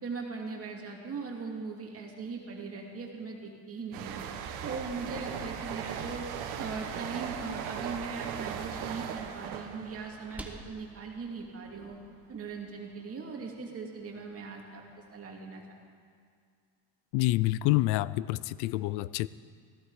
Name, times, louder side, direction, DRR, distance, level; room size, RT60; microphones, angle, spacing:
voice 1, 0.0-4.2 4.6-6.3 6.6-12.0 12.3-14.8 15.1-15.6, right 4 dB, 35° right, 1 dB, 2.5 m, -39 dB
sound 1, 3.9-11.4 11.7-12.0, right 8 dB, 75° right, 1.4 m, -39 dB
sound 2, 11.2-12.5, right 1 dB, 5° right, 1.3 m, -54 dB
voice 2, 17.1-19.3, left 17 dB, 90° left, 19 dB, 0.5 m, -27 dB
16.5 x 15.5 x 4.9 m, 2.2 s
cardioid pair, 125°, 39 cm